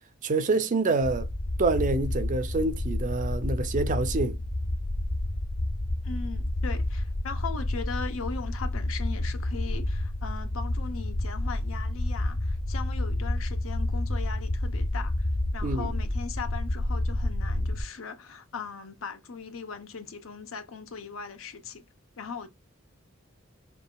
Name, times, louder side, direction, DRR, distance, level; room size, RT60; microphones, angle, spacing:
voice 1, 0.2-1.3 1.6-4.4 15.6-15.9, right 3 dB, 40° right, 0.5 m, -26 dB
sound 1, 1.0-17.8, left 1 dB, 40° left, 0.5 m, -30 dB
voice 2, 6.0-15.1 15.5-21.9 22.2-22.5, left 5 dB, 90° left, 0.7 m, -39 dB
5.2 x 2.3 x 2.3 m
head